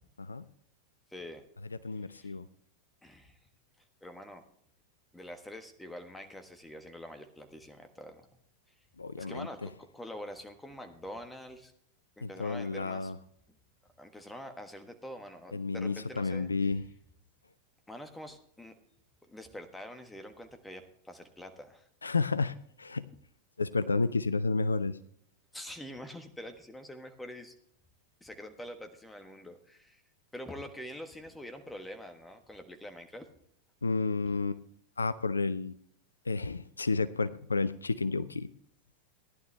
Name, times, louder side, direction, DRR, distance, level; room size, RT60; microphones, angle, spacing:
voice 1, 1.1-1.4 2.1-2.3 3.0-3.4 4.0-4.4 5.1-8.3 9.2-11.7 12.2-13.1 14.0-16.5 17.9-18.7 19.3-21.9 25.5-27.5 28.2-30.0 30.3-33.3, left 1 dB, 5° left, 7 dB, 1.4 m, -45 dB
voice 2, 1.8-2.4 9.0-9.5 12.2-13.2 15.5-16.8 22.0-23.1 23.6-25.0 33.8-34.6 35.0-35.7 36.3-38.5, left 3 dB, 75° left, 15 dB, 0.4 m, -31 dB
15.5 x 11.0 x 3.4 m, 0.65 s
figure-of-eight pair, 90°, 0 cm